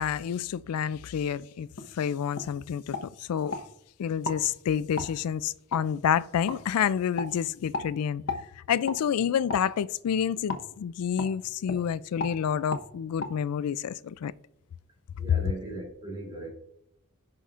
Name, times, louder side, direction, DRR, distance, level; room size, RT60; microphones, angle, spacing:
voice 1, 0.0-1.7 2.0-3.6 4.0-8.2 8.7-14.3, left 8 dB, 85° left, 0.3 m, -28 dB
sound 1, 1.8-1.9 2.3-2.5 2.9-3.6 4.2-4.4 5.0-5.1 5.7-5.8 6.5-6.6 7.1-7.3 7.7-7.9 8.3-8.4 8.8-9.0 9.5-9.7 10.5-10.6 11.2-11.3 11.6-11.8 12.2-12.4 12.7-12.8 13.2-13.3, left 3 dB, 60° left, 1.1 m, -34 dB
voice 2, 15.2-16.5, right 2 dB, 20° right, 2.9 m, -38 dB
15.5 x 5.7 x 2.5 m
head